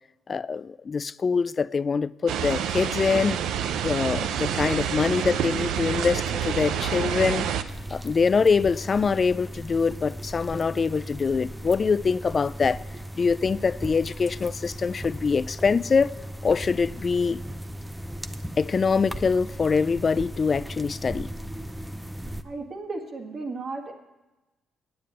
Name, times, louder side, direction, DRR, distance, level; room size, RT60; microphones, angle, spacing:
voice 1, 0.3-3.4 3.8-7.4 7.9-12.8 13.1-16.1 16.4-17.4 18.6-21.3, left 5 dB, 40° left, 0.3 m, -24 dB
sound 1, 2.3-7.6, right 8 dB, 85° right, 0.6 m, -27 dB
sound 2, 7.7-22.4, right 1 dB, 5° right, 0.6 m, -37 dB
voice 2, 22.4-23.9, right 3 dB, 50° right, 1.9 m, -34 dB
9.5 x 8.4 x 8.7 m
cardioid pair, 90°, 0 cm